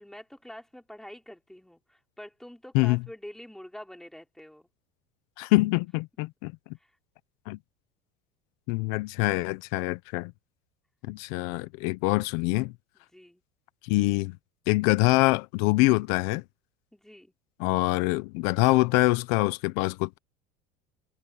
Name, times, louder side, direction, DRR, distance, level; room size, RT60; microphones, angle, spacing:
voice 1, 0.0-4.7 6.8-6.9 13.1-13.4 16.9-17.3, left 1 dB, ahead, 5.0 m, -46 dB
voice 2, 5.4-6.5 7.5-7.6 8.7-10.3 11.1-12.7 13.8-14.4 14.7-16.4 17.6-20.2, left 22 dB, 70° left, 1.0 m, -25 dB
supercardioid pair, 135°, 19 cm